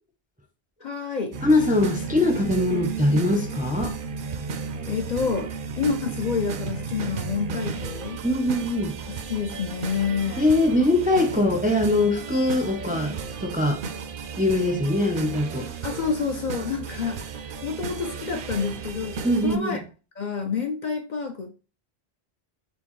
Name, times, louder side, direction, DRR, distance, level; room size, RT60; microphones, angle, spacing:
voice 1, 0.8-1.4 4.9-8.2 9.1-10.5 15.8-19.8 20.2-21.5, left 5 dB, 55° left, 0.6 m, -28 dB
sound 1, 1.3-19.6, right 5 dB, 65° right, 0.7 m, -34 dB
voice 2, 1.4-3.9 8.2-9.0 10.4-13.2 13.4-13.8 14.4-15.7 19.2-19.8, left 1 dB, 10° right, 0.5 m, -22 dB
4.5 x 3.4 x 3.0 m
omnidirectional pair, 1.1 m